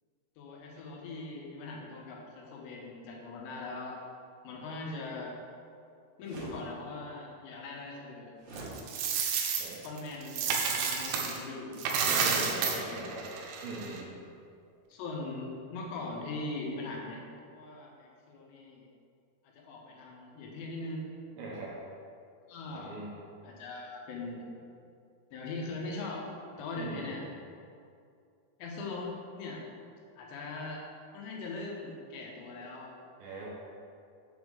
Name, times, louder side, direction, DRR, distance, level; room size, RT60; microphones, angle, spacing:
voice 1, 0.4-4.0 4.4-5.4 6.2-8.3 9.8-13.2 14.9-18.9 19.5-21.1 22.5-23.0 23.4-24.5 25.3-26.3 26.6-27.2 28.6-29.6 30.2-30.8 31.1-33.0, left 3 dB, 90° left, -2 dB, 3.2 m, -41 dB
sound 1, 6.2-6.6 8.4-8.8, right 2 dB, 55° right, 2.4 m, -43 dB
Coin (dropping), 8.6-11.4 11.7-14.0, right 6 dB, 90° right, 3.0 m, -31 dB
voice 2, 12.1-13.3 13.6-14.2 21.4-21.7 22.6-23.1 26.8-27.2 33.2-33.5, right 2 dB, 70° right, -4 dB, 2.5 m, -41 dB
7.2 x 3.6 x 6.4 m, 2.4 s
omnidirectional pair, 4.9 m